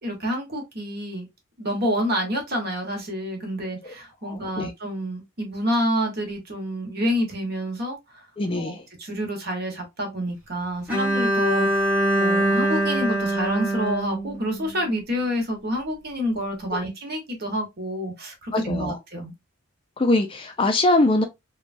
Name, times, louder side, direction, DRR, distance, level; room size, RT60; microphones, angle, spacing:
voice 1, 0.0-1.3 1.6-8.0 8.6-19.3, equal, 50° right, 1.1 m, -28 dB
voice 2, 4.3-4.7 8.4-8.8 16.7-16.8 18.5-19.0 20.0-21.2, left 2 dB, 25° left, 0.4 m, -22 dB
Bowed string instrument, 10.9-14.9, right 1 dB, 5° right, 0.8 m, -23 dB
3.2 x 2.2 x 2.5 m
head